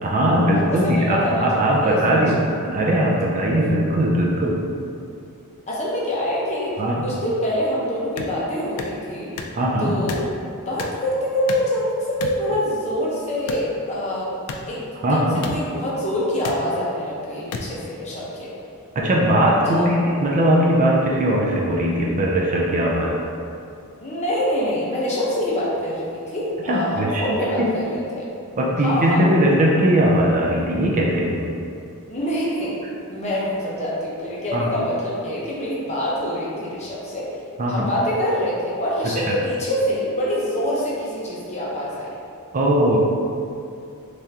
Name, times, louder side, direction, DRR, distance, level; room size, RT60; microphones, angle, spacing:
voice 1, 0.0-4.6 6.8-7.0 9.6-10.0 15.0-15.4 19.0-23.1 26.6-27.2 27.6-27.7 28.6-31.4 34.5-34.7 37.6-37.9 42.5-43.0, right 1 dB, 35° right, -3 dB, 0.4 m, -19 dB
voice 2, 0.7-2.0 5.7-6.8 7.0-9.4 9.8-10.3 10.7-14.3 14.7-18.5 19.7-19.9 24.0-28.3 28.8-29.2 32.1-32.7 33.1-37.3 37.7-42.1, left 1 dB, 30° left, -6 dB, 0.7 m, -25 dB
sound 1, 8.2-8.3 8.8-8.9 9.4-9.6 10.1-10.3 10.8-11.0 11.5-11.7 12.2-12.4 13.5-13.7 14.5-14.6 15.4-15.6 16.4-16.6 17.5-17.7, left 5 dB, 90° left, 0.4 m, -31 dB
3.5 x 3.3 x 2.8 m, 2.5 s
head